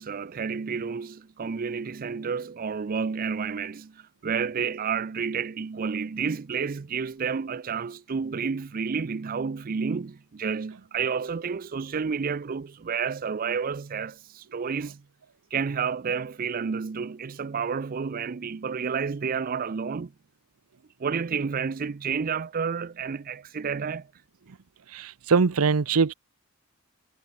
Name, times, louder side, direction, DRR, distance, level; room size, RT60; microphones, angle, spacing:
voice 1, 0.0-15.0 15.5-20.1 21.0-24.1, right 6 dB, 40° right, 0.4 m, -30 dB
voice 2, 24.9-26.1, right 5 dB, 85° right, 0.7 m, -22 dB
head